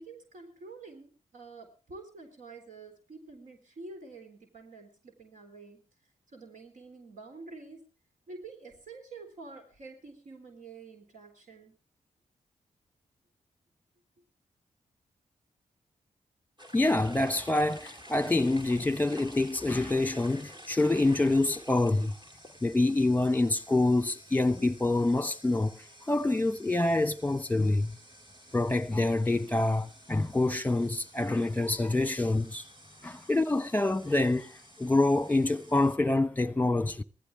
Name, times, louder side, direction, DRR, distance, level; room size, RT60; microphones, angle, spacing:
voice 1, 0.0-5.8 6.3-7.8 8.3-11.7, right 3 dB, 70° right, 3.8 m, -48 dB
sound 1, 16.6-36.0, equal, 35° right, 2.6 m, -52 dB
voice 2, 16.7-22.1 22.6-25.8 26.1-28.0 28.5-32.6 33.0-34.5 34.8-37.0, left 2 dB, 10° left, 1.1 m, -26 dB
18.5 x 15.0 x 3.5 m
cardioid pair, 50°, 13 cm